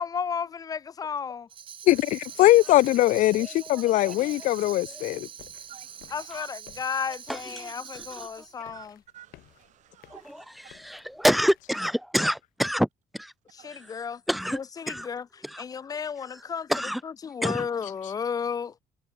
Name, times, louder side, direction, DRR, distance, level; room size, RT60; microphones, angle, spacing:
voice 1, 0.0-1.5 6.1-9.0 13.6-14.2 14.5-15.2 15.6-16.7 17.2-18.7, left 6 dB, 25° left, 1.0 m, -33 dB
Tambourine, 1.5-8.6, right 9 dB, 35° right, 1.0 m, -43 dB
voice 2, 1.9-5.3, left 16 dB, 60° left, 0.4 m, -21 dB
voice 3, 3.3-4.5 4.9-5.0 6.3-6.5 7.0-8.5 10.1-13.3 13.7-14.0 14.3-14.6 14.9-15.1 15.4-15.6 16.3-16.4 16.7-17.0 17.4-17.7, equal, ahead, 2.0 m, -29 dB
voice 4, 4.0-4.8 5.7-6.3 8.7-8.9 9.1-10.7 13.6-13.9, right 12 dB, 55° right, 3.3 m, -52 dB
sound 1, 5.4-11.7, left 16 dB, 90° left, 4.5 m, -56 dB
cardioid pair, 175°, 15 cm